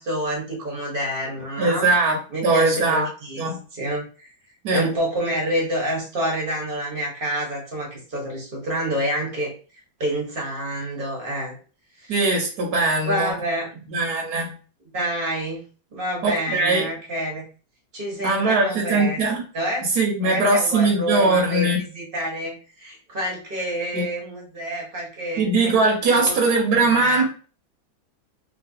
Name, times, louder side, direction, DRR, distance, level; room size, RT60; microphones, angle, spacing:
voice 1, 0.0-1.9 2.3-3.5 3.7-4.3 4.7-9.5 10.0-11.6 12.0-12.1 13.0-13.8 14.9-15.6 15.9-17.4 17.9-19.2 19.5-19.9 20.2-25.5 26.0-26.3 26.8-27.2, right 1 dB, 35° right, -2 dB, 0.9 m, -28 dB
voice 2, 1.6-3.1 3.4-3.6 4.6-4.9 12.1-13.3 13.9-14.6 16.2-16.9 18.2-19.4 19.9-21.8 23.9-24.0 25.4-27.2, right 3 dB, 60° right, -1 dB, 1.2 m, -20 dB
3.2 x 2.7 x 2.7 m, 0.37 s
omnidirectional pair, 2.2 m